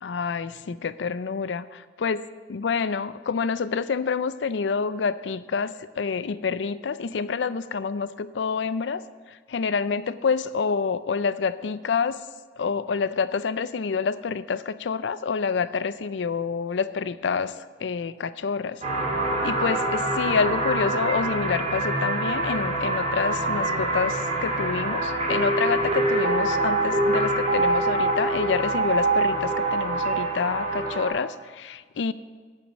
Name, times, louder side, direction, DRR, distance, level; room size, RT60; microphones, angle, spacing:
voice 1, 0.0-2.2 2.5-12.2 12.6-18.8 19.4-32.1, left 5 dB, 80° left, 15 dB, 0.5 m, -27 dB
sound 1, 18.8-31.1, right 2 dB, 40° right, 2.6 m, -25 dB
11.0 x 5.1 x 8.1 m, 1.5 s
head